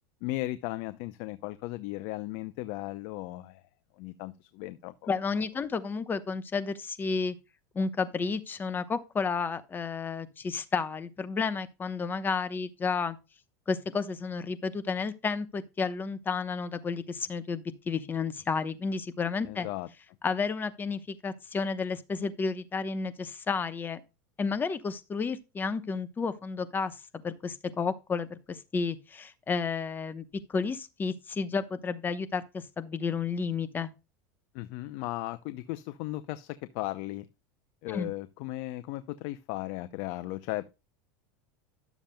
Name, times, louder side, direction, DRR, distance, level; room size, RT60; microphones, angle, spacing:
voice 1, 0.2-3.6 4.0-4.9 19.5-19.9 34.5-37.3 37.8-40.7, left 18 dB, 60° left, 0.6 m, -36 dB
voice 2, 5.1-7.4 7.7-13.2 13.7-19.7 20.2-24.0 24.4-27.0 27.2-33.9 37.9-38.1, left 5 dB, 20° left, 0.9 m, -31 dB
11.5 x 7.2 x 2.2 m
supercardioid pair, 120°, 9 cm